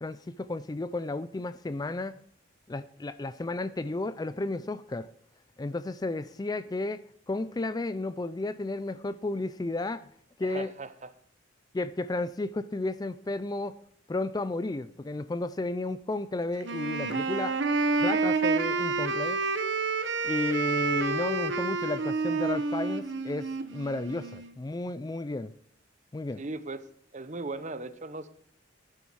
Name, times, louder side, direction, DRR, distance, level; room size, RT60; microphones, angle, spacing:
voice 1, 0.0-2.2 2.7-5.1 5.6-10.1 10.4-10.7 11.7-13.7 14.1-17.6 18.0-19.4 20.2-25.5 26.1-26.4, left 2 dB, 20° left, 0.3 m, -33 dB
voice 2, 10.4-11.1 26.4-26.8 27.1-28.3, right 3 dB, 35° right, 0.8 m, -38 dB
Wind instrument woodwind instrument, 16.6-24.5, right 4 dB, 60° right, 1.1 m, -29 dB
11.5 x 10.5 x 4.7 m
head